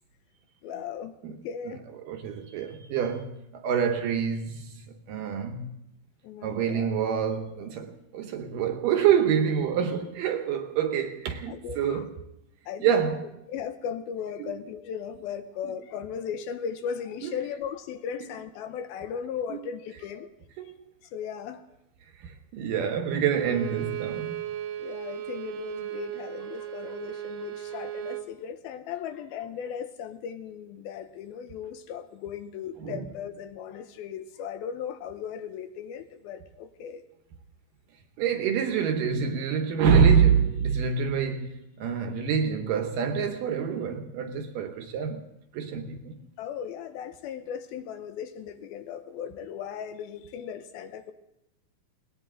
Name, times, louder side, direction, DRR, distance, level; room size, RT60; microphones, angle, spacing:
voice 1, 0.6-1.1 1.4-1.8 6.2-6.9 11.5-12.1 12.7-13.1 13.5-20.3 21.1-21.6 24.8-37.0 46.4-51.1, left 8 dB, 80° left, 2.5 m, -37 dB
voice 2, 2.0-5.7 6.4-12.2 12.8-13.3 14.4-14.6 15.6-15.7 17.2-17.3 19.5-19.7 20.6-20.7 22.2-24.4 32.8-33.0 38.2-45.3 45.5-46.2, right 7 dB, 70° right, 2.3 m, -26 dB
Bowed string instrument, 23.3-28.3, right 12 dB, 90° right, 3.4 m, -36 dB
20.5 x 18.5 x 3.8 m
omnidirectional pair, 4.6 m